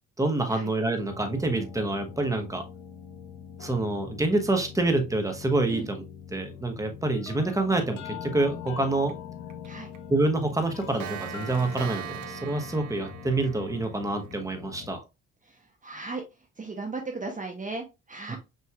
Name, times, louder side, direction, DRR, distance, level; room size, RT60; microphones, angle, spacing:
voice 1, 0.2-2.6 3.6-6.0 6.3-9.1 10.1-15.0 18.3-18.4, right 2 dB, 10° right, 5 dB, 1.0 m, -27 dB
sound 1, 1.1-15.0, left 9 dB, 65° left, 0.9 m, -42 dB
Clock, 9.1-9.2 9.5-9.7 9.9-10.0 10.4-14.4, right 13 dB, 75° right, 0.6 m, -41 dB
voice 2, 15.4-18.4, right 3 dB, 25° right, 3 dB, 0.8 m, -37 dB
5.9 x 3.1 x 2.3 m, 0.26 s
cardioid pair, 90°, 30 cm